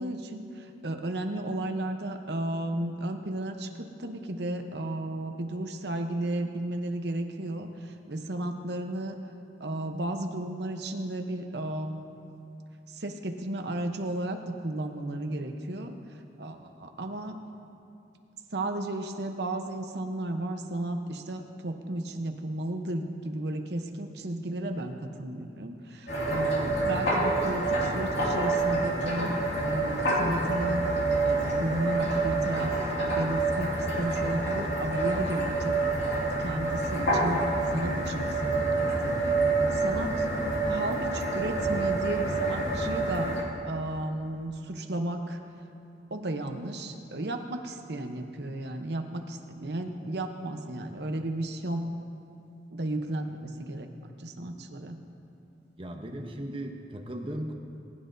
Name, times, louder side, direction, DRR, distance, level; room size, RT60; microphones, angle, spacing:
voice 1, 0.0-9.1 9.6-12.1 12.9-16.0 16.4-17.4 18.5-29.4 29.7-30.8 31.2-35.8 36.4-37.4 37.7-39.4 39.7-40.3 40.6-45.4 46.1-51.9 52.7-55.0, right 1 dB, 65° right, 5 dB, 0.9 m, -34 dB
sound 1, 26.1-43.4, right 2 dB, 80° left, 2.2 m, -27 dB
voice 2, 55.8-57.5, right 1 dB, 30° right, 2 dB, 0.8 m, -37 dB
19.5 x 10.5 x 2.7 m, 2.6 s
head